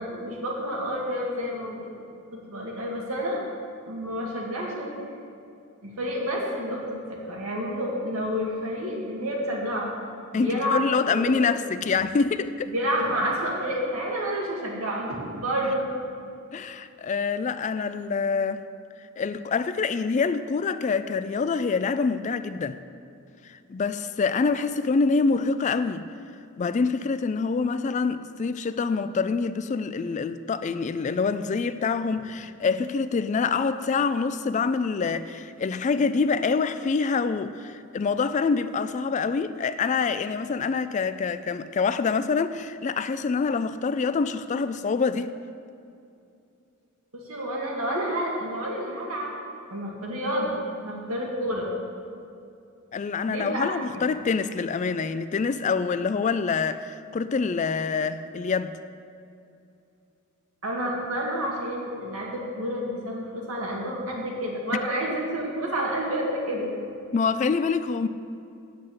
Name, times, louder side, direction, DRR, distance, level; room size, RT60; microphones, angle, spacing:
voice 1, 0.0-1.9 2.5-3.5 3.9-5.0 5.8-9.9 10.3-10.8 11.1-11.6 12.7-15.9 47.1-49.3 49.7-50.5 50.8-51.7 53.3-53.7 60.6-66.7, equal, 80° right, 2.1 m, -29 dB
voice 2, 10.3-12.7 16.5-18.6 19.2-22.8 23.4-26.1 26.6-45.4 52.9-58.7 64.7-64.8 67.1-68.1, left 5 dB, 35° left, 0.3 m, -26 dB
8.1 x 7.5 x 8.6 m
head